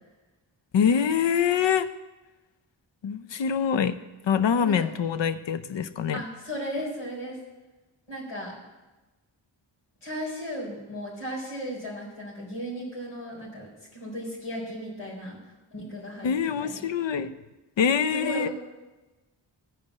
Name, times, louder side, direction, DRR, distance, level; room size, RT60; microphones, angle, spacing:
voice 1, 0.7-1.9 3.0-4.0 4.2-6.2 16.2-17.3 17.8-18.5, left 7 dB, 65° left, 13 dB, 0.8 m, -24 dB
voice 2, 6.1-7.4 8.1-8.5 10.0-16.3 16.6-16.8 18.1-18.5, equal, 80° left, -4 dB, 4.3 m, -35 dB
13.0 x 5.2 x 8.3 m, 1.1 s
cardioid pair, 40°, 48 cm